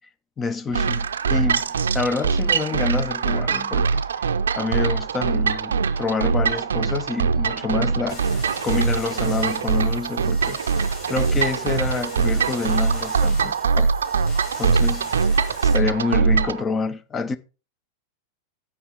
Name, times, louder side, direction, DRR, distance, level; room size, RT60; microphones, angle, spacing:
voice 1, 0.4-4.0 4.6-10.6 11.1-13.9 14.6-15.1 15.6-17.4, left 4 dB, 20° left, 0.7 m, -28 dB
sound 1, 0.7-16.6, right 5 dB, 65° right, 0.5 m, -22 dB
sound 2, 8.1-15.7, left 2 dB, 45° left, 4.8 m, -40 dB
11.0 x 7.7 x 3.5 m
figure-of-eight pair, 90°, 0 cm